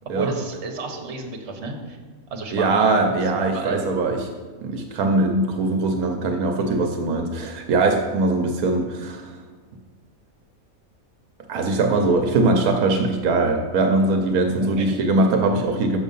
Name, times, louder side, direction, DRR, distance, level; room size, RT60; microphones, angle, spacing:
voice 1, 0.1-2.0 2.3-2.8 3.5-4.2 14.6-14.9, right 4 dB, 55° right, 3 dB, 1.3 m, -32 dB
voice 2, 2.5-4.3 4.6-9.4 11.5-16.0, right 2 dB, 80° right, 4 dB, 1.2 m, -21 dB
6.6 x 6.3 x 5.4 m, 1.5 s
omnidirectional pair, 1.5 m